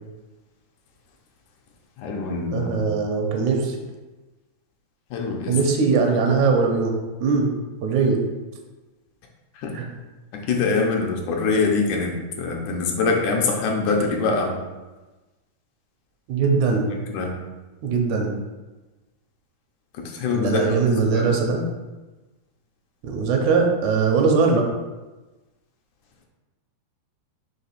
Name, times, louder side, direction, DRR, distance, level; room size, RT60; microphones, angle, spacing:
voice 1, 2.0-2.9 5.1-5.6 9.5-9.8 10.3-14.6 17.1-17.3 19.9-21.3, left 4 dB, 80° left, 1 dB, 2.3 m, -24 dB
voice 2, 2.5-3.8 5.5-6.9 7.2-7.5 7.8-8.2 9.8-9.9 16.3-16.9 17.8-18.3 20.3-21.6 23.0-24.7, right 4 dB, 80° right, 2 dB, 2.2 m, -20 dB
5.8 x 3.3 x 5.8 m, 1.2 s
omnidirectional pair, 3.5 m